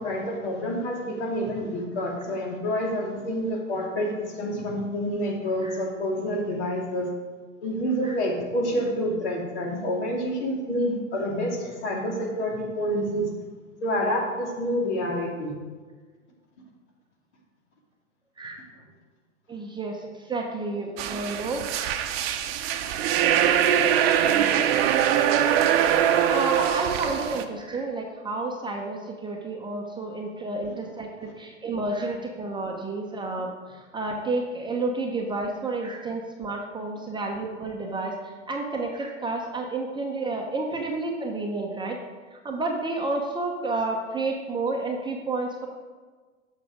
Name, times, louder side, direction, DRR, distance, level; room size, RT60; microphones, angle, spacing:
voice 1, 0.0-7.1 7.6-13.3 13.8-15.5, equal, 60° left, 0 dB, 2.4 m, -28 dB
voice 2, 19.5-21.6 24.2-24.7 26.1-38.1 38.5-42.0 42.3-45.7, right 2 dB, 10° right, 0 dB, 0.8 m, -30 dB
sound 1, 21.0-27.4, right 10 dB, 50° right, 0.8 m, -22 dB
7.7 x 6.4 x 5.0 m, 1.4 s
figure-of-eight pair, 100°, 39 cm